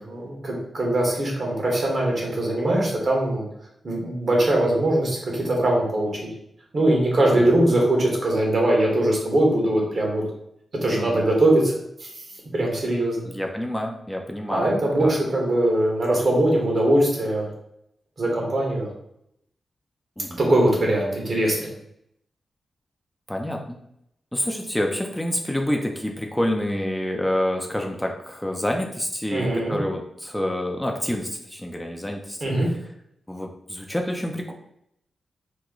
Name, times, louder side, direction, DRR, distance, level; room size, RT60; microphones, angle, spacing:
voice 1, 0.0-3.4 3.8-6.1 6.7-10.2 10.7-11.7 12.0-12.1 12.5-13.3 14.5-17.5 18.2-18.9 20.4-21.7 29.3-29.8 32.4-32.7, right 1 dB, 55° right, -1 dB, 1.2 m, -21 dB
voice 2, 13.2-15.1 20.2-20.4 23.3-23.8 24.3-32.7 33.3-34.5, left 1 dB, 10° left, 1 dB, 0.5 m, -28 dB
3.0 x 2.2 x 3.7 m, 0.76 s
cardioid pair, 60°, 0 cm